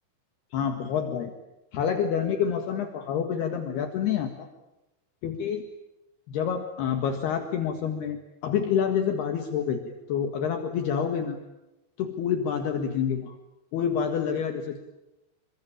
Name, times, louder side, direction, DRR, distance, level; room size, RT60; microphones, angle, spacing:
voice 1, 0.5-1.3 1.7-4.5 5.2-5.6 6.3-11.4 12.0-13.4 13.7-14.8, left 7 dB, 65° left, 6 dB, 3.6 m, -28 dB
29.0 x 23.5 x 8.8 m, 0.97 s
omnidirectional pair, 5.2 m